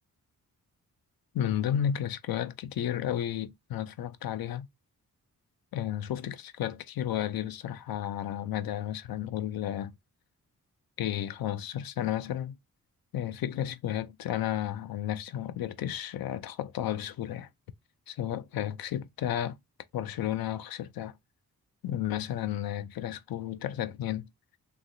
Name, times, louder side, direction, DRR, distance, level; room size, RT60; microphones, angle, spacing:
voice 1, 1.3-4.7 5.7-9.9 11.0-12.6 13.1-17.5 18.1-19.6 19.9-21.1 21.8-24.3, left 11 dB, 75° left, 0.5 m, -32 dB
3.1 x 2.8 x 2.5 m
cardioid pair, 65°, 36 cm